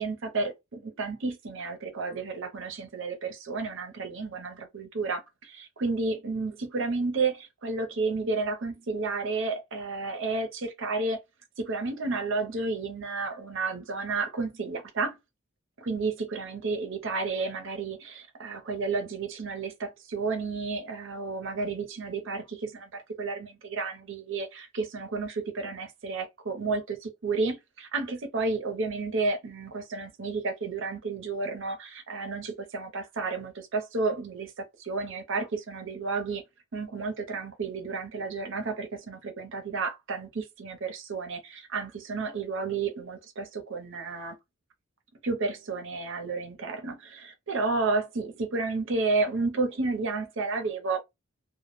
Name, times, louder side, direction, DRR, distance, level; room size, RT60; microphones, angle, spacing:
voice 1, 0.0-11.2 11.6-15.2 15.8-36.4 36.7-44.4 45.2-51.0, right 3 dB, 65° right, 0.7 m, -31 dB
2.2 x 2.1 x 3.0 m
head